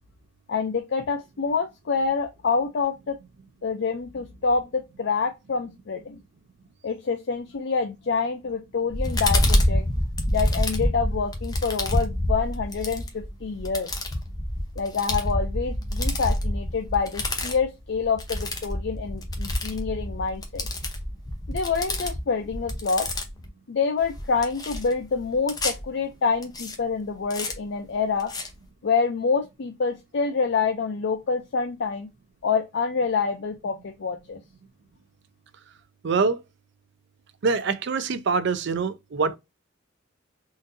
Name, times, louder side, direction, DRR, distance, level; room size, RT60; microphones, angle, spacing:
voice 1, 0.5-3.2 3.6-6.2 6.8-9.9 10.3-13.9 14.8-20.6 21.5-23.1 23.7-28.3 28.8-32.1 32.4-34.4, left 5 dB, 60° left, 0.5 m, -27 dB
sound 1, 8.9-23.5 24.0-25.8 26.4-26.8 27.3-27.5 28.2-28.5, left 1 dB, 20° left, 0.7 m, -27 dB
voice 2, 36.0-36.4 37.4-39.4, right 4 dB, 60° right, 0.4 m, -24 dB
3.8 x 2.6 x 2.6 m
head